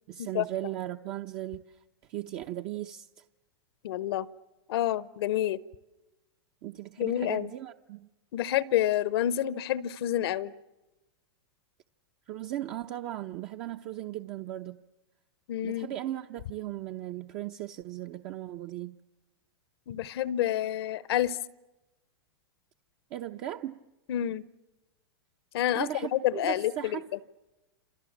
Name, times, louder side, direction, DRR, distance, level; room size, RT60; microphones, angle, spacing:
voice 1, 0.1-1.8 2.1-3.2 6.6-8.1 12.3-14.8 15.6-19.0 23.1-23.8 25.7-27.1, right 13 dB, 45° right, 0.8 m, -37 dB
voice 2, 3.8-4.3 4.7-5.6 7.0-7.5 8.3-10.5 15.5-15.9 19.9-21.4 24.1-24.4 25.5-27.0, left 12 dB, 70° left, 0.9 m, -28 dB
28.0 x 27.5 x 7.3 m
hypercardioid pair, 125°, 13 cm